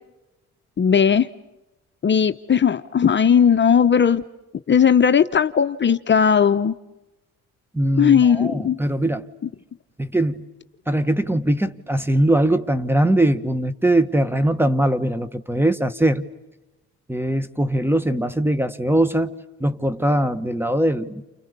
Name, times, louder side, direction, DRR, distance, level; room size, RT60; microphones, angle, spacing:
voice 1, 0.8-1.3 2.0-4.2 4.7-6.7 8.0-8.8, left 7 dB, 40° left, 0.9 m, -17 dB
voice 2, 7.7-9.3 10.0-10.4 10.9-16.2 17.1-21.2, right 1 dB, 5° right, 1.5 m, -21 dB
30.0 x 29.0 x 6.8 m
cardioid pair, 90°, 30 cm